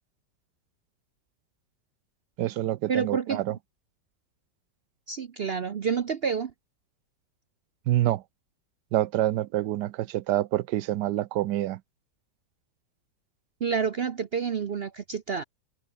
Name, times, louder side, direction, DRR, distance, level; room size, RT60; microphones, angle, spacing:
voice 1, 2.4-3.6 7.9-8.2 8.9-11.8, right 14 dB, 75° right, 1.2 m, -27 dB
voice 2, 2.9-3.6 5.1-6.5 13.6-15.4, right 6 dB, 55° right, 0.6 m, -29 dB
omnidirectional pair, 1.9 m